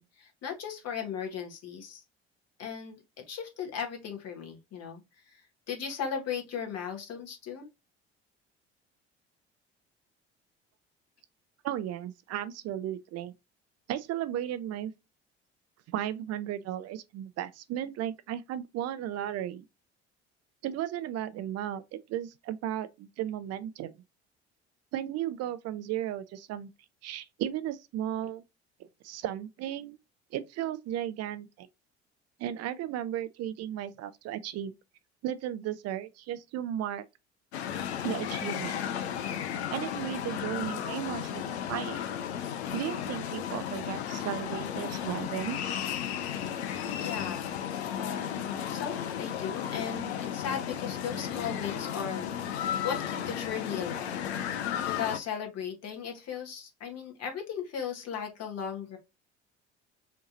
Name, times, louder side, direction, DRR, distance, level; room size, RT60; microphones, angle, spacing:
voice 1, 0.0-2.0 2.6-5.0 5.3-5.4 5.7-7.7 47.0-47.6 48.0-54.3 54.8-59.0, left 7 dB, 50° left, 1.5 m, -37 dB
voice 2, 11.6-13.3 13.9-14.9 15.9-19.6 20.6-23.9 24.9-26.7 27.0-28.4 29.0-30.0 30.3-31.7 32.4-34.7 35.2-37.1 38.0-38.8 39.7-42.0 42.7-45.7, right 11 dB, 50° right, 0.5 m, -35 dB
sound 1, 37.5-55.2, left 9 dB, 80° left, 0.6 m, -34 dB
5.1 x 2.9 x 2.5 m
hypercardioid pair, 60°, 32 cm